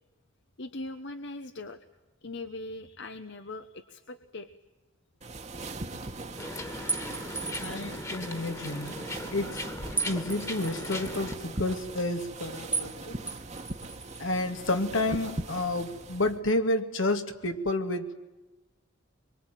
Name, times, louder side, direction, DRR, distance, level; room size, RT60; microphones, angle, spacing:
voice 1, 0.6-1.8 2.2-4.5 6.9-7.1, left 2 dB, 60° left, 8 dB, 1.1 m, -40 dB
sound 1, 5.2-16.4, right 2 dB, 35° right, 1.5 m, -40 dB
sound 2, 6.4-11.3, left 2 dB, 15° left, 1.9 m, -38 dB
sound 3, 6.9-7.9 10.0-11.0 12.7-13.0 13.3-14.2, right 3 dB, 5° right, 0.9 m, -34 dB
voice 2, 7.6-8.9 9.3-9.6 10.1-13.2 14.2-18.1, left 2 dB, 80° left, 6 dB, 2.3 m, -30 dB
25.0 x 23.5 x 9.2 m, 1.1 s
head